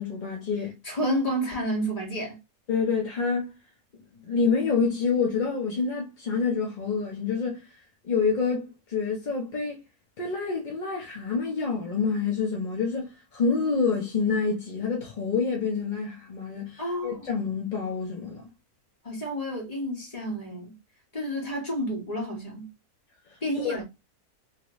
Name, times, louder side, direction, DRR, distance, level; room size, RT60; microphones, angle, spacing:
voice 1, 0.0-0.8 2.7-3.5 4.3-7.7 8.0-9.8 10.2-18.5 23.6-23.8, left 5 dB, 45° left, 0.6 m, -27 dB
voice 2, 0.8-2.4 16.8-17.3 19.0-20.8 21.1-22.7 23.4-23.8, equal, 25° left, 1.4 m, -30 dB
2.9 x 2.8 x 3.0 m
omnidirectional pair, 1.6 m